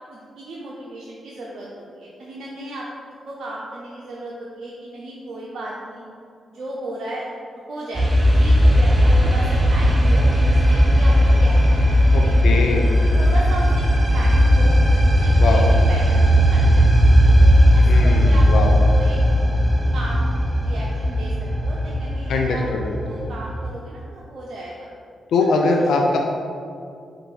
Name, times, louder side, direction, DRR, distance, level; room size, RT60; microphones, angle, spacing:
voice 1, 0.1-6.1 6.5-7.3 7.7-12.6 13.2-13.9 14.1-14.8 15.2-16.8 17.4-18.5 18.9-19.2 19.9-22.6 23.1-24.9 25.6-25.7, right 1 dB, 65° right, -4 dB, 0.6 m, -35 dB
sound 1, 7.9-23.7, equal, 30° right, 0.8 m, -16 dB
voice 2, 12.1-13.0 15.4-15.6 17.9-18.7 22.3-23.0 25.3-26.2, left 3 dB, 75° left, 1 dB, 0.4 m, -21 dB
4.4 x 2.6 x 4.6 m, 2.4 s
hypercardioid pair, 40°, 0 cm